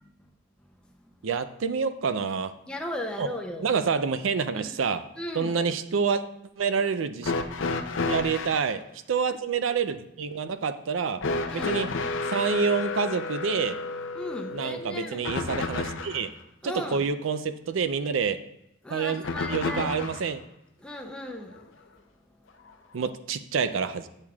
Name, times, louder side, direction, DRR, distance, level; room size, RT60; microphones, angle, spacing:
voice 1, 1.2-2.5 3.2-3.3 3.6-5.0 5.3-6.2 6.6-7.3 8.1-8.8 9.1-11.2 11.5-11.9 12.3-13.8 14.5-16.3 16.6-18.4 18.9-19.2 19.5-20.4 22.9-24.1, right 5 dB, 75° right, 11 dB, 0.4 m, -27 dB
voice 2, 2.7-3.7 4.5-4.8 5.2-5.6 11.5-11.8 14.2-15.3 16.6-17.0 18.8-20.1 20.8-21.6, left 1 dB, 5° left, 1 dB, 0.5 m, -36 dB
sound 1, 7.2-8.7 11.2-16.3 19.2-20.3 21.5-21.6 22.7-22.8, left 3 dB, 70° left, 0.5 m, -31 dB
8.7 x 6.6 x 2.3 m, 0.82 s
head